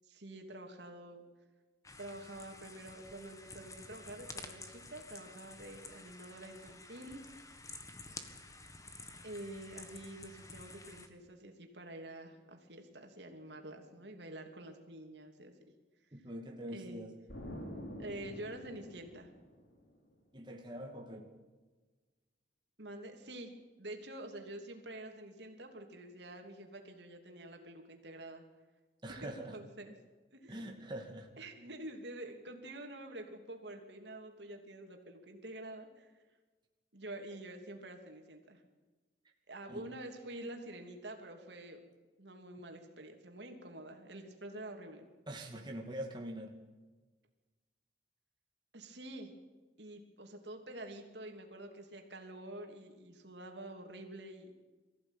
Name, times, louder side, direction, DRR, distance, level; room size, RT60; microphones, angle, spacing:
voice 1, 0.0-1.2 2.0-7.2 9.2-15.5 16.7-17.1 18.0-19.3 22.8-23.5 23.8-28.4 29.2-29.9 30.3-30.8 31.4-36.1 36.9-38.6 39.5-41.8 42.2-45.1 48.7-49.3 49.8-54.5, right 1 dB, 75° right, 4 dB, 3.1 m, -47 dB
sound 1, 1.8-11.1, left 3 dB, 20° left, 1.6 m, -51 dB
voice 2, 16.1-17.1 20.3-21.3 29.0-29.6 30.5-31.3 39.7-39.8 45.3-46.6, right 1 dB, 25° right, 1 dB, 2.4 m, -44 dB
Explosion, 17.3-20.0, equal, 85° left, 5.1 m, -47 dB
23.0 x 15.0 x 9.1 m, 1.3 s
head